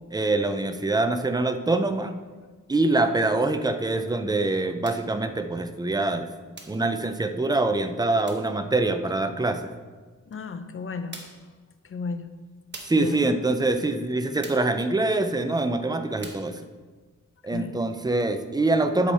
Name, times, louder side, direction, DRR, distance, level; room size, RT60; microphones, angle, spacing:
voice 1, 0.1-2.1 2.7-6.3 6.7-9.7 12.8-16.6 17.4-19.1, right 2 dB, 15° right, 8 dB, 0.4 m, -24 dB
sound 1, 4.8-5.1 6.6-6.9 8.3-8.5 10.3-10.4 11.1-11.5 12.7-13.1 14.4-14.8 16.2-16.5, right 3 dB, 35° right, 1.0 m, -43 dB
voice 2, 10.3-11.2 11.8-12.3 12.9-13.2 17.5-17.8, left 4 dB, 45° left, 8 dB, 0.5 m, -34 dB
8.2 x 6.3 x 4.2 m, 1.4 s
wide cardioid pair, 175°, 31 cm